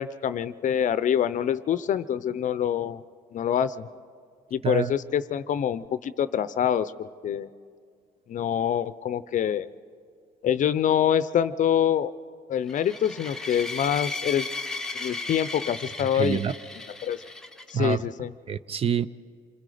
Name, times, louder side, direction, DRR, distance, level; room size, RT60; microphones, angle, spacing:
voice 1, 0.0-3.0 3.3-3.9 4.5-7.5 8.3-9.7 10.4-12.1 12.5-14.5 15.0-16.4 17.0-17.2 17.7-18.3, left 9 dB, 50° left, 0.6 m, -25 dB
sound 1, 12.7-17.9, left 3 dB, 5° left, 0.8 m, -35 dB
voice 2, 16.1-16.5 17.7-18.0 18.5-19.1, right 8 dB, 35° right, 0.5 m, -26 dB
27.5 x 22.0 x 5.0 m
cardioid pair, 110°, 17 cm